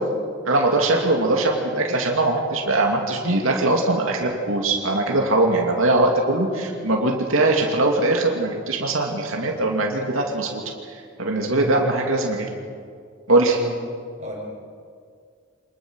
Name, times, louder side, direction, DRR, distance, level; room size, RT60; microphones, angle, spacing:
voice 1, 0.5-10.6 10.9-12.5 13.3-13.6, right 2 dB, 85° right, 1 dB, 2.6 m, -21 dB
voice 2, 11.5-12.2 13.6-13.7 14.2-14.4, equal, 35° right, -2 dB, 6.1 m, -33 dB
25.0 x 20.5 x 6.4 m, 2.1 s
head